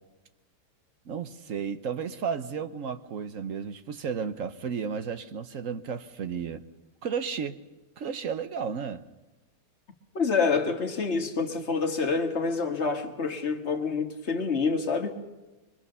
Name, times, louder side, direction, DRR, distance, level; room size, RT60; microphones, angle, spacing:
voice 1, 1.0-6.6 7.0-7.6 8.0-9.0, right 6 dB, 55° right, 1.3 m, -33 dB
voice 2, 10.1-15.1, left 4 dB, 40° left, 2.0 m, -27 dB
23.5 x 23.5 x 6.8 m
omnidirectional pair, 1.8 m